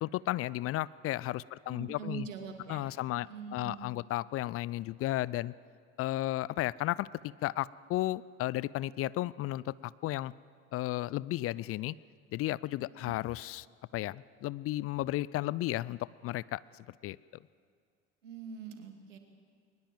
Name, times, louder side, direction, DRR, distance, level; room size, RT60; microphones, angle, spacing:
voice 1, 0.0-2.3 2.7-3.3 3.5-5.5 6.0-7.1 7.4-10.3 10.7-11.9 12.3-13.7 13.9-17.2, left 16 dB, 40° left, 21 dB, 0.5 m, -34 dB
voice 2, 1.7-3.8 12.9-13.1 18.2-19.2, right 6 dB, 80° right, 5 dB, 2.4 m, -44 dB
21.5 x 20.5 x 7.6 m, 2.2 s
figure-of-eight pair, 65°, 37 cm